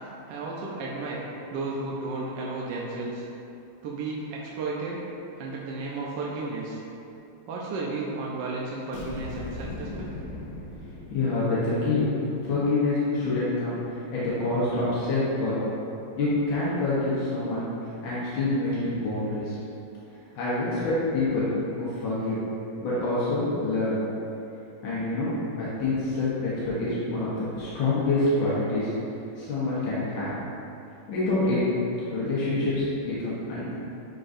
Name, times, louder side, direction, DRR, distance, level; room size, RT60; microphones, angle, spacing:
voice 1, 0.3-1.2 1.5-3.2 3.8-5.0 5.4-6.8 7.5-10.1, right 3 dB, 70° right, -4 dB, 1.3 m, -33 dB
sound 1, 8.9-11.7, left 2 dB, 55° left, 0.9 m, -38 dB
voice 2, 10.8-12.1 12.4-15.6 16.2-17.7 18.0-19.6 20.4-21.5 21.8-22.4 22.8-24.0 24.8-25.3 25.5-28.9 29.4-30.3 31.1-31.6 32.1-33.7, left 2 dB, 80° left, -9 dB, 1.9 m, -26 dB
11.0 x 3.8 x 2.6 m, 2.8 s
omnidirectional pair, 2.1 m